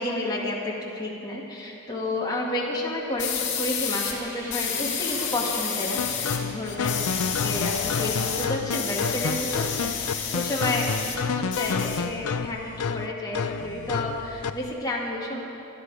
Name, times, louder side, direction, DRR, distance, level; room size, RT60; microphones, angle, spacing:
voice 1, 0.0-10.9 11.3-15.4, left 1 dB, 20° left, -4 dB, 2.1 m, -31 dB
sound 1, 3.2-4.2 4.5-6.4 6.7-11.2 11.5-12.5, left 7 dB, 55° left, 2.1 m, -30 dB
sound 2, 3.5-10.4, equal, 10° right, 2.6 m, -46 dB
sound 3, 6.0-14.7, left 5 dB, 85° left, 0.5 m, -30 dB
24.0 x 11.5 x 4.8 m, 2.9 s
head